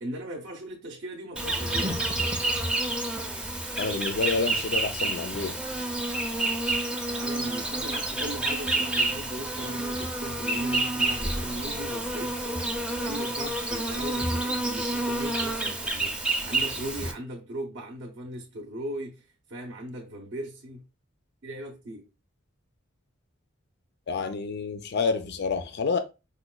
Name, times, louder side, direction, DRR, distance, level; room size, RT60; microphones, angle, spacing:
voice 1, 0.0-2.4 7.1-20.9 21.4-22.1, right 1 dB, 60° right, 0.6 m, -38 dB
Insect, 1.4-17.1, right 2 dB, 5° right, 0.4 m, -29 dB
voice 2, 3.8-5.5 24.1-26.0, left 4 dB, 55° left, 0.4 m, -28 dB
5.0 x 2.2 x 2.2 m
head